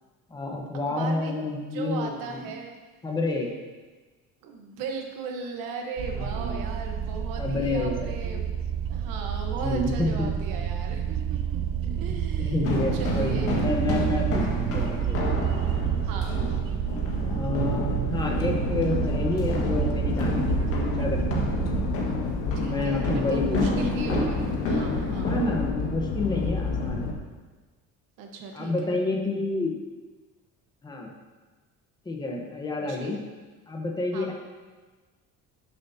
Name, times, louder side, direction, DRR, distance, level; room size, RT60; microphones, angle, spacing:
voice 1, 0.3-2.5 3.0-3.5 6.1-6.8 7.4-8.4 9.6-10.3 11.7-15.2 17.3-21.6 22.6-24.2 25.2-27.1 28.5-29.7 30.8-31.1 32.0-33.2 33.7-34.3, left 2 dB, 10° left, 0 dB, 1.0 m, -29 dB
voice 2, 0.9-1.3 1.7-2.7 4.4-8.5 8.9-11.6 11.9-13.6 16.0-16.4 22.5-25.4 28.2-28.9 32.9-33.1 34.1-34.3, right 4 dB, 80° right, 2 dB, 1.2 m, -37 dB
sound 1, 6.0-22.0, right 8 dB, 45° right, 0.4 m, -29 dB
sound 2, 12.6-25.7, left 1 dB, 45° left, 1.6 m, -31 dB
sound 3, 18.2-27.1, left 4 dB, 80° left, 1.3 m, -30 dB
11.0 x 7.2 x 2.8 m, 1.3 s
cardioid pair, 165°, 33 cm